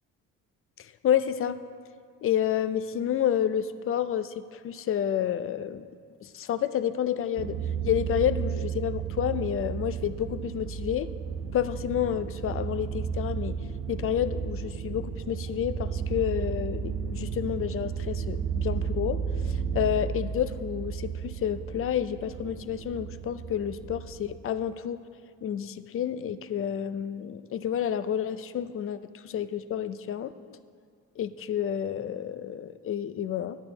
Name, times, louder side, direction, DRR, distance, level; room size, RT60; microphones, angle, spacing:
voice 1, 0.8-1.6 2.2-5.8 6.2-7.6 7.8-11.1 11.5-13.6 13.9-19.2 19.5-25.0 25.4-29.0 29.2-30.3 31.2-33.6, left 9 dB, 45° left, 13 dB, 0.5 m, -29 dB
sound 1, 7.4-24.4, right 7 dB, 50° right, 0.5 m, -33 dB
9.9 x 8.5 x 3.9 m, 2.3 s
cardioid pair, 90°, 30 cm